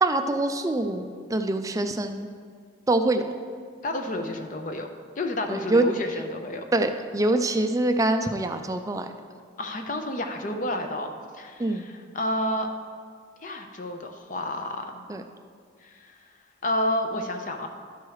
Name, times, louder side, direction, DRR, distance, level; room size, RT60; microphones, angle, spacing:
voice 1, 0.0-2.3 2.9-3.2 5.5-5.8 6.7-9.1 11.6-11.9 15.1-15.2, right 2 dB, 15° right, 7 dB, 0.4 m, -24 dB
voice 2, 3.8-4.9 5.2-6.7 9.6-12.7 13.4-15.0 15.8-16.2 16.6-17.7, left 1 dB, 40° left, 5 dB, 0.6 m, -30 dB
12.0 x 4.7 x 4.7 m, 2.1 s
head